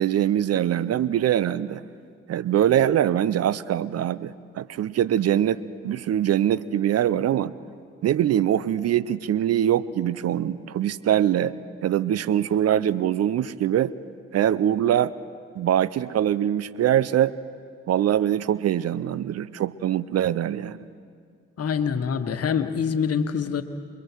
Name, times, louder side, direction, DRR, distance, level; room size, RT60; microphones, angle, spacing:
voice 1, 0.0-1.8 2.3-7.5 8.0-11.5 11.8-13.9 14.3-15.1 15.5-17.3 17.9-20.8, right 10 dB, 60° right, 18 dB, 0.7 m, -23 dB
voice 2, 21.6-23.6, left 6 dB, 55° left, 9 dB, 1.5 m, -25 dB
28.5 x 22.5 x 4.7 m, 2.1 s
hypercardioid pair, 45°, 29 cm